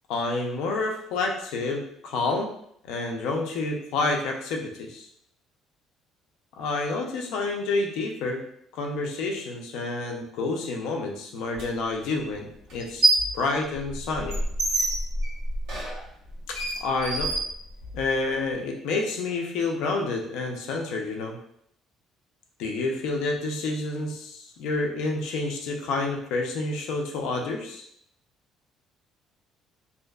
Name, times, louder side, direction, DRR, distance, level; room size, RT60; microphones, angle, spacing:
voice 1, 0.1-2.5 2.8-5.1 6.6-8.4 8.7-14.4 16.5-17.3 17.9-21.4 22.6-27.9, left 3 dB, 80° left, 2 dB, 0.4 m, -29 dB
sound 1, 11.6-11.7 12.7-13.4 13.7-18.1, right 1 dB, 60° right, 1.3 m, -26 dB
2.7 x 2.4 x 2.2 m, 0.70 s
cardioid pair, 170°, 0 cm